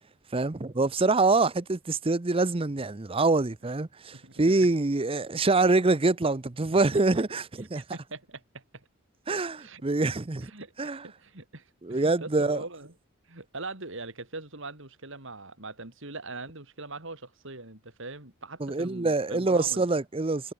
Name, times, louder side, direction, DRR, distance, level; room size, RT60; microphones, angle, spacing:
voice 1, 0.3-7.8 9.3-10.5 10.8-11.0 11.8-12.6 18.6-20.5, right 3 dB, 25° right, 0.7 m, -25 dB
voice 2, 4.1-4.7 6.7-6.8 7.1-7.2 7.8-8.9 9.6-9.8 10.4-12.9 13.3-19.9, right 3 dB, 60° right, 3.9 m, -42 dB
head